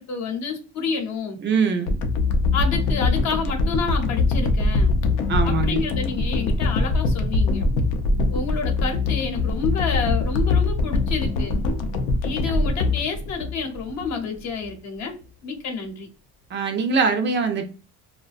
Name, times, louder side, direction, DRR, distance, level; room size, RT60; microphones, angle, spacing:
voice 1, 0.0-1.4 2.5-4.9 5.4-7.7 8.3-11.5 12.2-15.2 15.4-16.1, left 5 dB, 60° left, 3 dB, 0.8 m, -29 dB
voice 2, 1.4-1.9 5.3-5.8 16.5-17.6, right 5 dB, 35° right, 6 dB, 0.4 m, -22 dB
sound 1, 1.9-14.1 14.6-14.7, left 3 dB, 90° left, 0.5 m, -22 dB
2.4 x 2.1 x 2.4 m, 0.38 s
cardioid pair, 120°, 32 cm